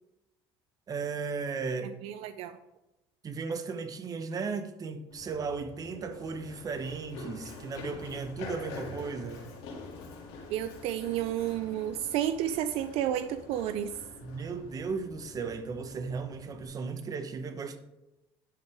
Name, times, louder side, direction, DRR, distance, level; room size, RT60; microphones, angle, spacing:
voice 1, 0.9-2.0 3.2-9.4 14.2-17.8, right 5 dB, 35° right, 1.1 m, -36 dB
voice 2, 2.0-2.6 10.5-13.9, right 11 dB, 75° right, 0.5 m, -31 dB
Run, 5.1-16.6, left 4 dB, 85° left, 2.6 m, -46 dB
11.5 x 8.2 x 3.5 m
cardioid pair, 110°, 10 cm